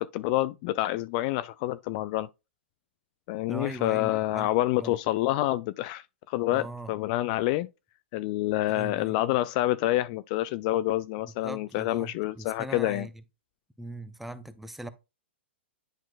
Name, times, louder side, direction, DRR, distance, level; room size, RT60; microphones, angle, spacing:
voice 1, 0.0-2.3 3.3-7.7 8.1-13.1, left 16 dB, 40° left, 0.3 m, -28 dB
voice 2, 3.5-4.5 4.8-5.0 6.5-6.9 8.7-9.2 11.2-13.1 13.8-14.9, right 1 dB, 5° right, 0.7 m, -40 dB
10.5 x 4.4 x 2.4 m
hypercardioid pair, 120°, 6 cm